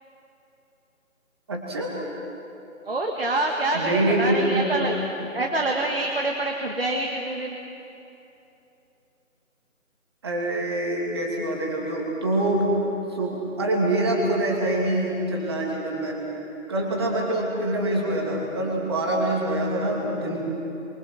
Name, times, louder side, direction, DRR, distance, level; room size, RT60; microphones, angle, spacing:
voice 1, 1.5-1.9 3.7-4.7 10.2-12.6 13.1-16.2 16.7-20.4, right 1 dB, 20° right, -2 dB, 2.7 m, -25 dB
voice 2, 2.9-5.0 5.3-7.6, right 2 dB, 45° right, 1 dB, 2.0 m, -26 dB
28.5 x 24.5 x 6.3 m, 2.9 s
figure-of-eight pair, 165°, 42 cm